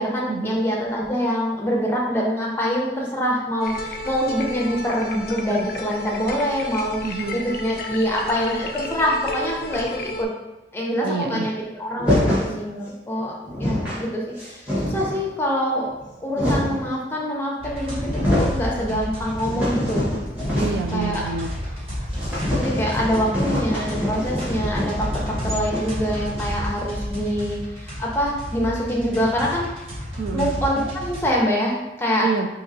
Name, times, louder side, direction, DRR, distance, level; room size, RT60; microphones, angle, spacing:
voice 1, 0.0-9.9 10.2-10.3 10.7-13.3 13.6-15.9 16.2-20.1 20.9-21.2 22.5-29.7 30.3-32.3, equal, 15° left, -3 dB, 0.6 m, -25 dB
sound 1, 3.6-10.2, left 2 dB, 55° left, 0.4 m, -33 dB
voice 2, 7.0-7.4 11.0-11.5 18.8-19.0 20.5-21.6 30.2-30.5 32.2-32.5, right 5 dB, 65° right, 3 dB, 0.4 m, -27 dB
sound 2, 12.0-12.5 13.2-13.3 13.4-14.0 14.4-15.2 15.9-16.9 17.6-17.7 18.0-18.6 19.0-21.0 21.2-21.3 21.6-21.7 22.1-26.6, left 1 dB, 10° right, 1.1 m, -25 dB
sound 3, 17.6-31.3, equal, 35° right, 1.0 m, -31 dB
4.4 x 2.8 x 2.6 m, 1.0 s
head